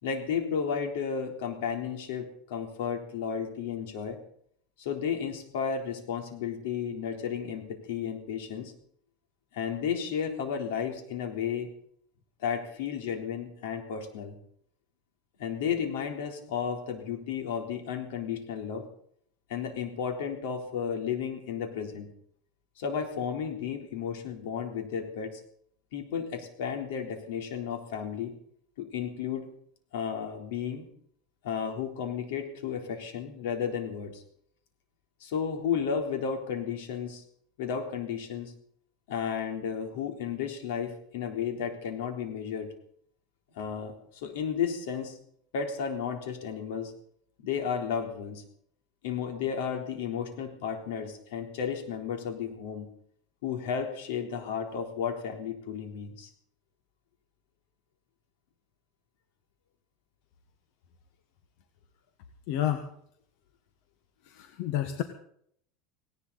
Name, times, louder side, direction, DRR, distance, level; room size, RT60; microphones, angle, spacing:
voice 1, 0.0-4.2 4.8-8.7 9.5-11.7 12.4-14.3 15.4-18.8 19.5-22.1 22.8-25.4 25.9-28.3 28.8-29.5 29.9-30.9 31.4-34.2 35.2-37.2 37.6-38.5 39.1-42.7 43.6-45.2 45.5-46.9 47.4-48.4 49.0-52.9 53.4-56.3, left 7 dB, 75° left, 4 dB, 3.7 m, -33 dB
voice 2, 62.5-62.9 64.3-65.0, left 11 dB, 60° left, 7 dB, 1.5 m, -30 dB
18.5 x 18.0 x 4.2 m, 0.65 s
supercardioid pair, 155°, 0 cm